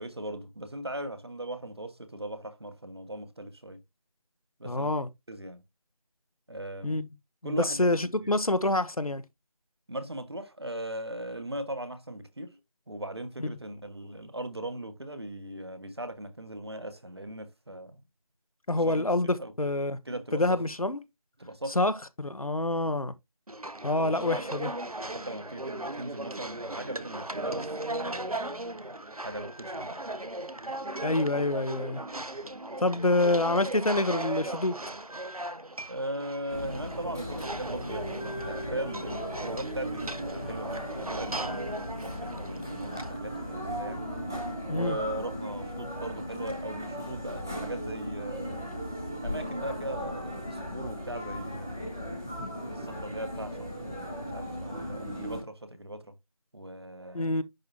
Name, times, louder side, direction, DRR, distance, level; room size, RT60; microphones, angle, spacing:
voice 1, 0.0-3.8 4.6-4.9 5.3-5.6 6.5-7.0 7.4-7.9 8.2-8.3 9.9-12.6 12.9-18.0 18.7-19.0 19.4-19.5 20.0-20.6 21.4-21.8 22.7-22.9 24.0-24.6 25.1-30.2 35.9-44.1 44.6-48.8 49.2-52.0 52.6-56.1 56.5-57.4, right 1 dB, 45° right, 1.3 m, -39 dB
voice 2, 4.6-5.1 6.8-7.0 7.4-9.2 13.4-13.5 18.7-20.0 20.3-21.0 21.7-23.1 23.8-24.7 31.0-32.0 32.8-34.8 44.7-45.0 52.4-52.5 57.1-57.4, left 2 dB, 75° left, 1.1 m, -27 dB
sound 1, 23.5-43.1, right 2 dB, 90° right, 1.0 m, -37 dB
sound 2, 36.5-55.4, equal, 5° right, 1.1 m, -37 dB
10.5 x 3.5 x 2.9 m
figure-of-eight pair, 170°, 18 cm